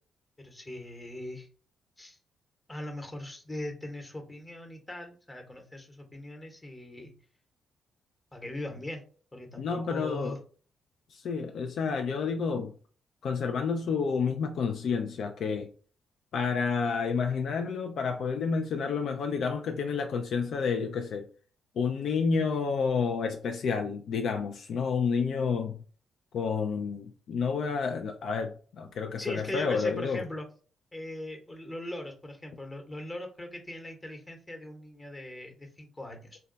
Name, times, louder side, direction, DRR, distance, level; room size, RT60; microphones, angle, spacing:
voice 1, 0.4-1.5 2.0-2.2 2.7-7.1 8.3-9.0 9.3-10.4 29.2-30.5 30.9-36.4, left 1 dB, 25° left, 0.9 m, -40 dB
voice 2, 9.6-10.4 11.1-12.7 13.2-15.7 16.3-21.3 21.8-25.8 26.3-30.2, left 5 dB, 70° left, 0.3 m, -30 dB
2.2 x 2.2 x 3.8 m
supercardioid pair, 55°, 0 cm